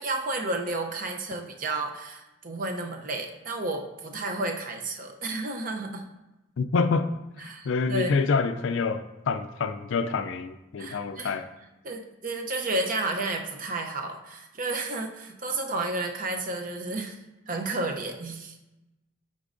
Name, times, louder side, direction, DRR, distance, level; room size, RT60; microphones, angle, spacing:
voice 1, 0.0-6.0 7.5-8.2 10.8-11.4 11.8-17.1 17.5-18.6, right 2 dB, 40° right, 3 dB, 0.6 m, -31 dB
voice 2, 6.6-7.1 7.4-11.5, left 4 dB, 70° left, 11 dB, 0.4 m, -27 dB
8.2 x 5.3 x 2.5 m, 0.98 s
head